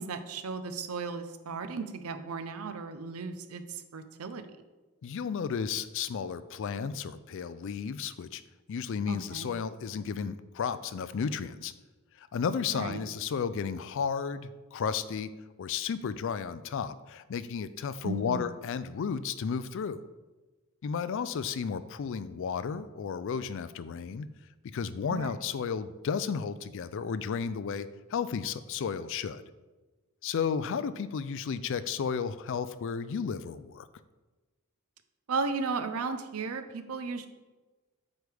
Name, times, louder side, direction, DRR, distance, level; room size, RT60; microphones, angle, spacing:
voice 1, 0.0-4.5 9.1-9.5 12.7-13.0 18.0-18.4 25.1-25.3 35.3-37.3, right 4 dB, 85° right, 10 dB, 0.6 m, -35 dB
voice 2, 5.0-8.4 8.7-11.7 12.2-15.3 15.6-20.0 20.8-24.3 24.6-29.4 30.2-33.9, left 6 dB, 60° left, 14 dB, 0.4 m, -33 dB
8.0 x 4.8 x 3.4 m, 1.2 s
head